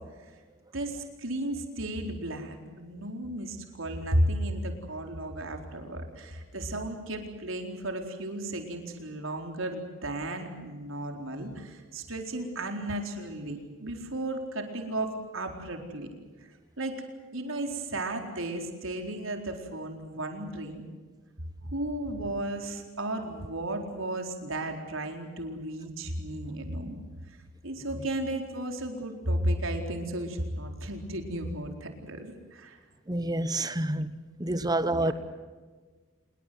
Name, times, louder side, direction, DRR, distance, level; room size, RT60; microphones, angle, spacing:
voice 1, 0.7-16.1 16.4-16.5 16.8-16.9 17.3-20.8 21.6-27.0 27.3-27.4 27.6-32.8 34.9-35.1, right 1 dB, 70° right, 4.3 m, -34 dB
voice 2, 33.1-34.1 34.4-35.1, right 2 dB, 20° right, 1.1 m, -28 dB
27.0 x 22.0 x 7.9 m
head